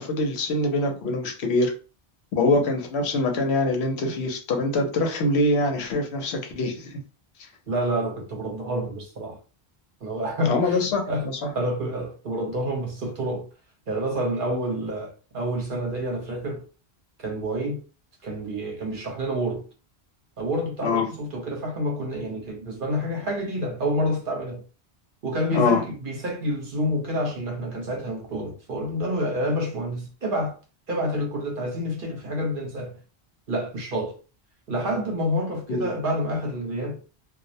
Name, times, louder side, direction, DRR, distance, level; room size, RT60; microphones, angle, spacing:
voice 1, 0.0-1.7 2.4-7.0 10.5-11.5 20.8-21.1 25.5-25.8 35.7-35.9, left 2 dB, 80° left, 0.9 m, -24 dB
voice 2, 7.7-9.4 10.0-11.3 11.5-13.5 13.9-16.6 17.2-17.8 18.2-19.6 20.4-24.6 25.2-30.6 30.9-33.0 33.5-34.2 34.7-37.0, equal, 55° right, 0.9 m, -28 dB
2.3 x 2.0 x 2.7 m
omnidirectional pair, 1.1 m